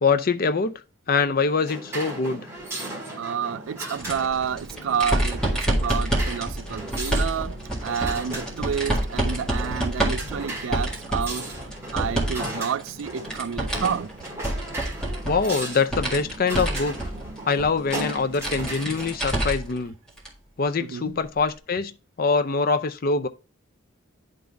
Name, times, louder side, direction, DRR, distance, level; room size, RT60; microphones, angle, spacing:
voice 1, 0.0-0.8 1.1-2.5 15.2-17.0 17.5-19.9 20.6-21.9 22.2-23.3, left 4 dB, 45° left, 0.5 m, -24 dB
sound 1, 1.7-19.2, right 1 dB, 15° right, 1.9 m, -37 dB
voice 2, 3.2-7.6 7.8-11.5 11.9-14.1 20.8-21.1, right 7 dB, 70° right, 0.4 m, -29 dB
sound 2, 4.0-12.5 12.8-19.8 20.2-20.3 21.5-21.6, right 1 dB, 5° left, 1.9 m, -28 dB
sound 3, 7.3-15.0, equal, 45° right, 1.7 m, -49 dB
10.5 x 3.9 x 3.4 m
head